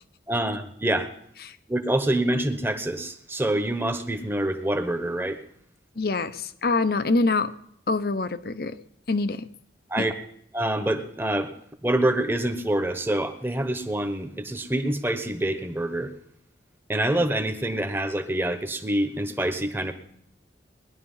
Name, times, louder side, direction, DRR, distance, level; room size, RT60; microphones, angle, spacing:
voice 1, 0.3-1.1 1.7-5.4 9.9-10.1 10.5-11.5 11.8-16.1 16.9-19.9, right 1 dB, 10° right, 9 dB, 1.1 m, -26 dB
voice 2, 6.0-7.5 7.9-8.8 9.1-9.4 10.0-10.1, left 3 dB, 55° left, 13 dB, 0.8 m, -25 dB
20.0 x 11.0 x 5.6 m, 0.69 s
head